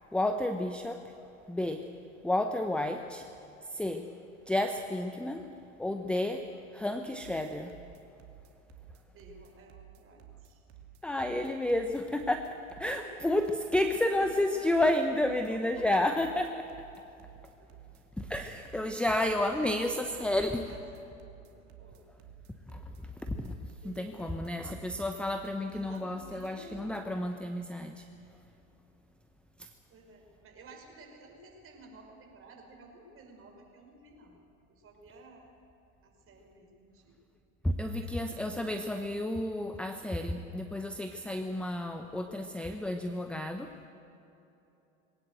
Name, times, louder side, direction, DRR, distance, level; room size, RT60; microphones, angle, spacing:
voice 1, 0.1-1.0 1.5-1.9 2.2-3.3 3.6-4.1 4.5-5.5 5.8-6.5 6.7-7.8 11.0-16.7 18.2-20.7 22.7-28.1 29.6-29.7 37.6-43.7, left 1 dB, 5° left, 6 dB, 0.8 m, -31 dB
sound 1, 7.2-27.0, right 12 dB, 55° right, 2.6 m, -53 dB
voice 2, 9.0-10.6 12.9-13.2 13.8-14.8 15.5-15.9 17.6-17.7 19.2-20.3 20.7-20.8 21.1-22.1 23.8-25.3 25.7-27.2 29.9-34.4 34.7-35.5 36.0-37.1 37.9-38.6, right 2 dB, 30° right, 1 dB, 5.2 m, -53 dB
21.0 x 18.0 x 7.9 m, 2.9 s
hypercardioid pair, 95°, 41 cm